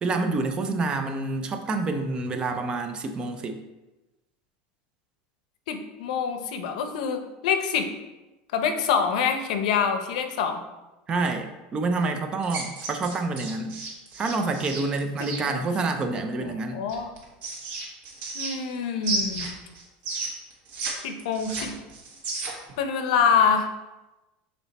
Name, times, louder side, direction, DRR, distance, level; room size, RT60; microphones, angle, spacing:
voice 1, 0.0-3.6 11.1-13.8 14.2-16.8, right 3 dB, 20° right, 6 dB, 0.5 m, -28 dB
voice 2, 5.7-7.9 8.5-10.6 15.2-15.7 16.4-17.1 18.3-19.5 21.0-21.7 22.8-23.7, left 6 dB, 80° left, 7 dB, 0.8 m, -25 dB
sound 1, 12.4-15.4 16.9-18.8 19.0-20.9 21.2-22.7, right 3 dB, 45° right, 1.4 m, -33 dB
6.0 x 4.0 x 4.1 m, 1.1 s
supercardioid pair, 160°, 4 cm